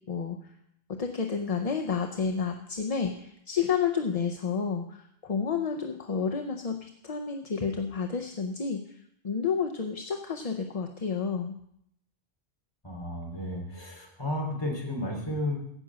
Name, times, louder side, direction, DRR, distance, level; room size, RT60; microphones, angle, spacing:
voice 1, 0.1-0.4 0.9-11.6, left 6 dB, 40° left, 4 dB, 0.7 m, -30 dB
voice 2, 12.8-15.5, left 1 dB, 25° left, -1 dB, 3.1 m, -33 dB
16.0 x 6.0 x 6.1 m, 0.74 s
omnidirectional pair, 1.1 m